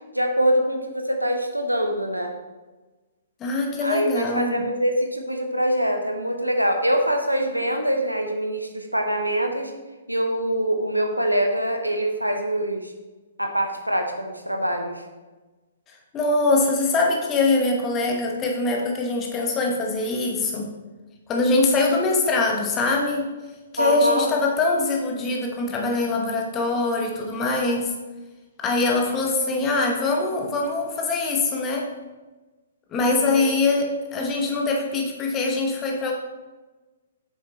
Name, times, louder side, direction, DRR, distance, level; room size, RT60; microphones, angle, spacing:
voice 1, 0.1-2.3 3.8-9.7 10.1-12.9 13.4-15.0 23.8-24.3 33.2-33.4, equal, 85° right, 4 dB, 0.9 m, -24 dB
voice 2, 3.4-4.5 16.1-20.7 21.3-23.3 23.7-27.9 28.6-31.9 32.9-36.1, left 3 dB, 20° left, 1 dB, 1.1 m, -23 dB
7.8 x 6.4 x 3.0 m, 1.2 s
figure-of-eight pair, 120°, 0 cm